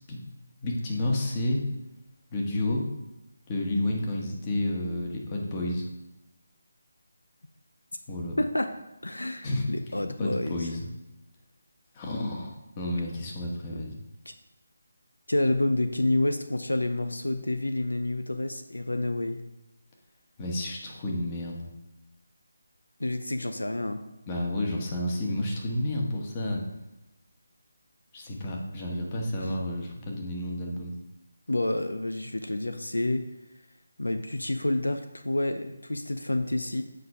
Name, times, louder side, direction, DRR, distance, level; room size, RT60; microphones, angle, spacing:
voice 1, 0.6-1.6 2.3-2.9 3.5-5.9 8.1-8.3 9.4-9.7 10.2-10.9 11.9-14.0 20.4-21.6 24.3-26.6 28.1-31.0, left 1 dB, 25° left, 0 dB, 1.3 m, -30 dB
voice 2, 8.4-8.7 9.0-10.7 14.3-14.4 15.3-19.4 23.0-24.0 31.5-33.3 34.0-36.8, left 1 dB, 90° left, 8 dB, 0.6 m, -28 dB
7.7 x 4.0 x 4.8 m, 0.94 s
figure-of-eight pair, 160°, 0 cm